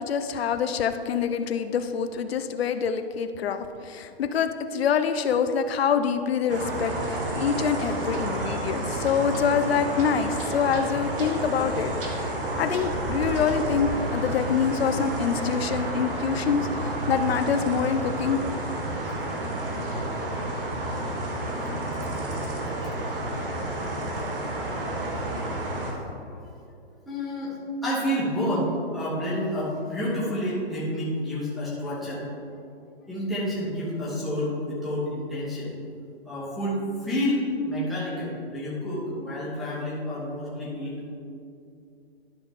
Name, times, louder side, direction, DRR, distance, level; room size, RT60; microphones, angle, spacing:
voice 1, 0.0-18.4, left 7 dB, 70° left, 9 dB, 0.6 m, -26 dB
sound 1, 6.5-25.9, right 1 dB, 60° right, 1.7 m, -30 dB
voice 2, 27.0-32.3 33.1-35.7 36.2-41.1, equal, ahead, -10 dB, 0.9 m, -29 dB
11.5 x 5.6 x 3.6 m, 2.5 s
hypercardioid pair, 175°, 31 cm